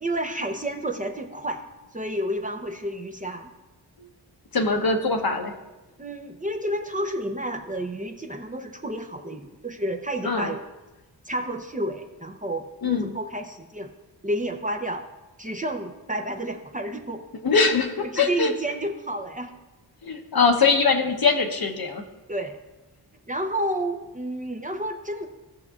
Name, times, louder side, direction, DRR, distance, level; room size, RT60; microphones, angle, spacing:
voice 1, 0.0-1.6 1.9-3.5 6.0-10.6 11.3-13.9 14.2-15.0 15.4-17.2 18.0-19.5 22.3-22.6 23.3-25.3, right 1 dB, 20° right, 3 dB, 0.7 m, -30 dB
voice 2, 4.5-5.5 10.2-10.5 12.8-13.1 17.4-18.5 20.0-22.0, left 4 dB, 60° left, 4 dB, 1.0 m, -22 dB
16.5 x 6.4 x 2.4 m, 1.1 s
wide cardioid pair, 90°, 42 cm